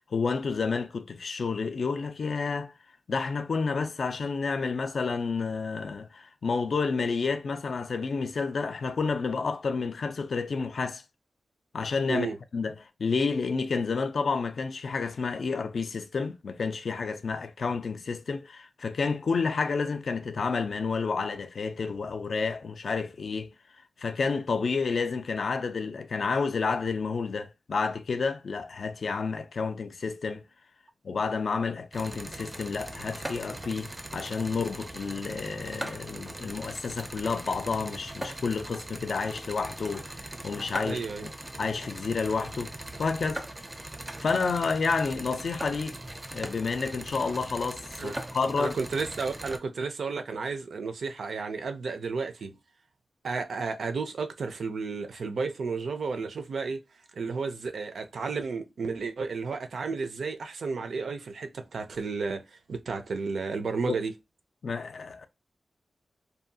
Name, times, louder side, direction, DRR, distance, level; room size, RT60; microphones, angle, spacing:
voice 1, 0.0-2.7 3.1-11.0 11.7-12.3 12.5-23.5 24.0-30.5 31.0-41.3 41.6-42.7 43.0-43.4 44.2-46.0 46.3-48.8 63.9-64.0 64.6-65.3, left 4 dB, 60° left, 0.3 m, -30 dB
sound 1, 31.9-49.6, right 1 dB, 15° right, 0.4 m, -40 dB
voice 2, 40.8-41.3 48.0-48.2 48.6-52.5 53.2-56.8 57.1-64.1, right 4 dB, 75° right, 0.5 m, -32 dB
2.7 x 2.2 x 2.6 m
wide cardioid pair, 165°, 0 cm